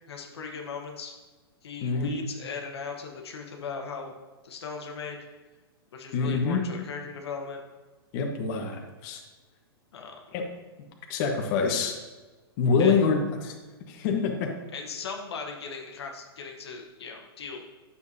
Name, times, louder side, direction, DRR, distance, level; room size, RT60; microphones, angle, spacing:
voice 1, 0.1-1.1 1.6-4.1 4.4-5.2 5.9-7.6 9.9-10.2 12.8-13.0 14.7-17.7, left 5 dB, 80° left, 2 dB, 1.2 m, -38 dB
voice 2, 6.1-6.6 8.1-9.2 10.3-10.4 11.1-11.9 12.6-13.5 13.9-14.5, left 5 dB, 45° left, 1 dB, 1.2 m, -25 dB
9.5 x 7.0 x 2.7 m, 1.3 s
hypercardioid pair, 125°, 13 cm